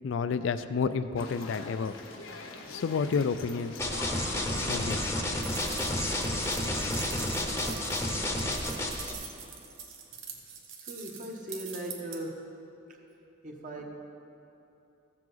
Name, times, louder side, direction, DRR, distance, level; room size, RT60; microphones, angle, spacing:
voice 1, 0.0-1.9 2.7-3.8 4.7-5.1, left 5 dB, 65° left, 11 dB, 0.4 m, -30 dB
sound 1, 1.2-6.7, left 3 dB, 90° left, 1.0 m, -44 dB
sound 2, 3.8-9.1, left 1 dB, 15° left, 0.8 m, -30 dB
sound 3, 5.4-12.2, right 6 dB, 80° right, 1.1 m, -44 dB
voice 2, 10.8-12.3 12.9-13.0 13.4-13.8, right 1 dB, 40° right, 1 dB, 1.1 m, -39 dB
14.5 x 7.5 x 3.9 m, 2.9 s
head